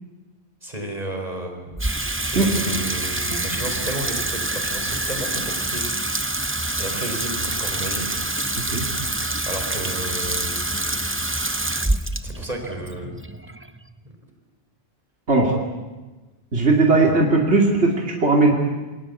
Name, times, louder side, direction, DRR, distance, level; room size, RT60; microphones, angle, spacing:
voice 1, 0.6-1.8 2.2-5.8 6.8-8.1 9.5-11.2 12.2-13.2 17.0-17.2, right 1 dB, 40° right, 3 dB, 5.1 m, -32 dB
Water tap faucet / Sink (filling or washing), 1.7-14.1, right 2 dB, 15° right, 0.8 m, -26 dB
voice 2, 16.5-18.5, right 3 dB, 85° right, 0 dB, 3.0 m, -18 dB
27.5 x 23.0 x 8.5 m, 1.2 s
omnidirectional pair, 1.1 m